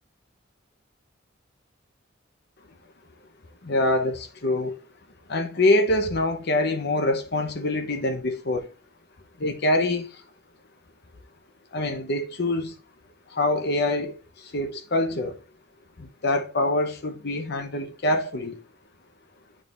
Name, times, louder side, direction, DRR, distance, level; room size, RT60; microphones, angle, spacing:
voice 1, 3.6-4.8 5.3-8.7 9.4-10.2 11.7-12.8 13.3-15.4 16.0-18.6, left 1 dB, 55° left, 0.9 m, -25 dB
11.0 x 3.9 x 2.6 m
head